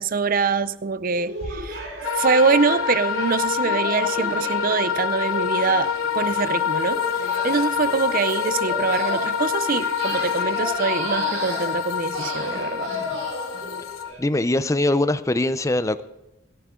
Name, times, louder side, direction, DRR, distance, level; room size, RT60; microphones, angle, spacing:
voice 1, 0.0-1.8 2.2-12.9, right 5 dB, 40° right, 0.5 m, -24 dB
sound 1, 1.1-14.2, equal, 60° right, 6.0 m, -34 dB
sound 2, 1.4-3.3, left 1 dB, 55° left, 1.4 m, -41 dB
sound 3, 2.0-14.1, left 7 dB, 80° left, 1.1 m, -26 dB
voice 2, 14.2-16.0, left 1 dB, 15° left, 0.5 m, -22 dB
27.0 x 9.2 x 3.7 m
head